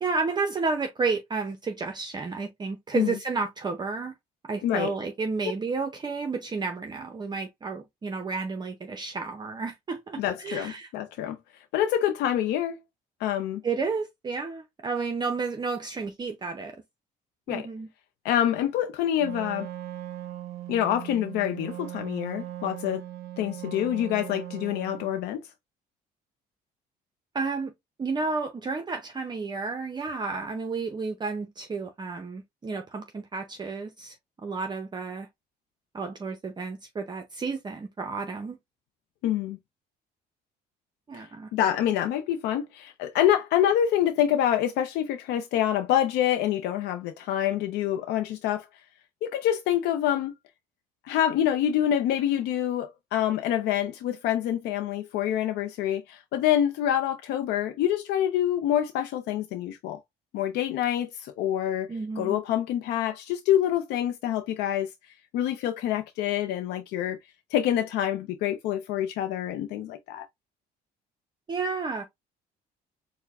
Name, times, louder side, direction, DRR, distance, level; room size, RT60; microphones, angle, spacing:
voice 1, 0.0-4.1 4.4-10.9 13.6-16.8 17.5-17.9 27.3-27.7 28.0-34.2 34.4-35.3 35.9-38.6 41.1-41.5 61.9-62.4 71.5-72.0, right 4 dB, 25° right, 0.6 m, -31 dB
voice 2, 4.6-4.9 10.2-12.8 13.2-13.6 17.5-17.7 18.2-19.7 20.7-23.0 23.4-25.4 39.2-39.6 41.1-41.3 41.5-48.7 49.2-50.3 51.0-60.0 60.3-61.9 62.2-64.9 65.3-67.2 67.5-70.3, left 11 dB, 85° left, 0.5 m, -26 dB
Wind instrument woodwind instrument, 19.2-25.1, right 13 dB, 70° right, 0.5 m, -39 dB
4.5 x 2.1 x 3.4 m
cardioid pair, 110°, 17 cm